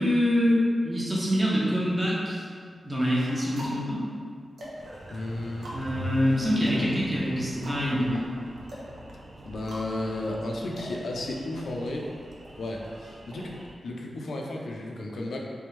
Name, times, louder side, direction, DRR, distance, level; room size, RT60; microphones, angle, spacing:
voice 1, 0.0-2.4 2.8-4.0 5.7-8.2, equal, 15° right, -6 dB, 0.8 m, -25 dB
sound 1, 3.5-11.7, equal, 75° right, 0.9 m, -44 dB
Engine, 4.8-13.7, right 1 dB, 45° right, 0.5 m, -42 dB
voice 2, 5.1-5.7 9.4-12.1 12.6-13.5 13.8-15.4, left 1 dB, 80° left, -1 dB, 0.5 m, -33 dB
3.5 x 3.4 x 3.1 m, 2.1 s
wide cardioid pair, 145°, 0 cm